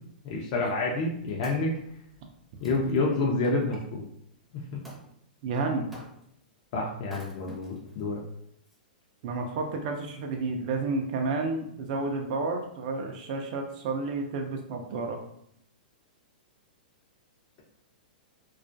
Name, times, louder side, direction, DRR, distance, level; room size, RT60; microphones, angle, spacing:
voice 1, 0.2-1.8 2.6-4.0 4.5-4.8 6.7-8.2, left 3 dB, 45° left, -2 dB, 0.5 m, -28 dB
Wood, 1.3-3.8 4.8-5.1 5.9-6.4 7.0-8.0 8.7-8.8, equal, ahead, 0.6 m, -50 dB
voice 2, 5.4-5.9 9.2-15.2, right 3 dB, 50° right, 2 dB, 0.4 m, -31 dB
2.3 x 2.1 x 2.5 m, 0.72 s
hypercardioid pair, 125°, 5 cm